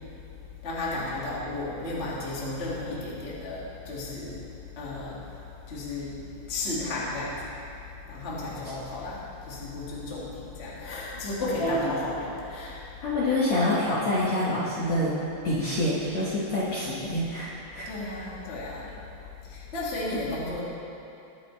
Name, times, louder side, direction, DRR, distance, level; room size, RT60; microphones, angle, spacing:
voice 1, 0.6-7.6 8.0-13.0 17.8-19.0 19.4-20.6, left 2 dB, 25° left, -6 dB, 1.6 m, -34 dB
voice 2, 11.6-11.9 13.0-15.2 15.4-17.9, left 1 dB, 55° left, -8 dB, 2.1 m, -26 dB
22.0 x 8.8 x 3.3 m, 2.8 s
omnidirectional pair, 4.7 m